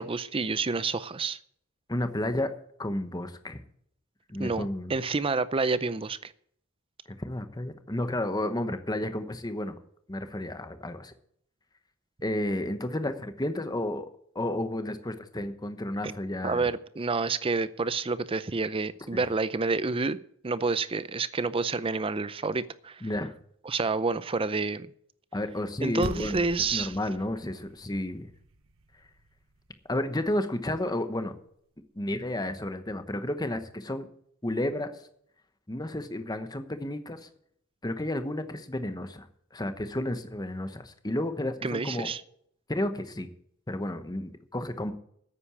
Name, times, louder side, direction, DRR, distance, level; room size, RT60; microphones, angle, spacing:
voice 1, 0.0-1.4 4.4-6.3 16.0-16.1 16.4-20.2 20.4-23.0 23.7-24.9 25.8-27.0 41.6-42.2, right 4 dB, 25° right, 0.5 m, -29 dB
voice 2, 1.9-2.5 2.8-3.6 4.3-4.9 7.1-9.8 10.1-11.1 12.2-14.1 14.3-16.7 19.1-19.3 23.0-23.3 25.3-26.4 26.7-28.3 29.9-31.4 31.9-34.1 34.4-34.9 35.7-37.3 37.8-39.3 39.5-42.1 42.7-43.3 43.7-44.9, left 1 dB, 20° left, 1.0 m, -32 dB
sound 1, 26.0-30.5, right 2 dB, 65° right, 0.9 m, -43 dB
9.6 x 8.7 x 8.5 m
head